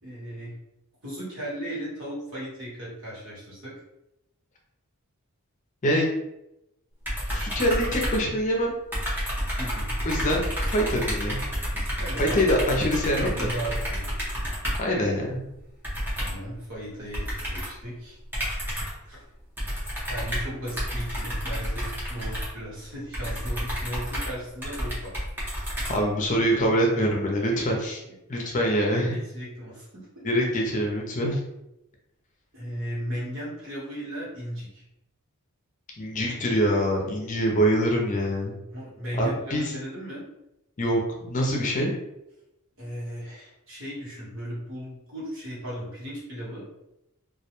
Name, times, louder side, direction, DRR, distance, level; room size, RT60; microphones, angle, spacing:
voice 1, 0.0-0.5 1.0-3.7 9.6-9.9 11.7-12.4 13.1-14.1 16.2-18.2 19.0-19.2 20.1-25.1 27.5-27.8 28.6-30.2 32.5-34.8 38.7-40.2 42.8-46.6, equal, 60° right, -6 dB, 1.1 m, -36 dB
sound 1, 7.1-8.6 8.9-14.9 15.8-16.5 17.1-17.8 18.3-19.1 19.6-26.4, equal, 10° right, 0.7 m, -30 dB
voice 2, 7.3-8.8 10.0-11.4 12.2-13.5 14.8-15.5 25.9-28.0 28.3-29.1 30.2-31.4 36.0-38.6 39.2-39.7 40.8-41.0 41.3-41.9, equal, 35° left, 0 dB, 0.5 m, -24 dB
2.3 x 2.1 x 2.9 m, 0.87 s
head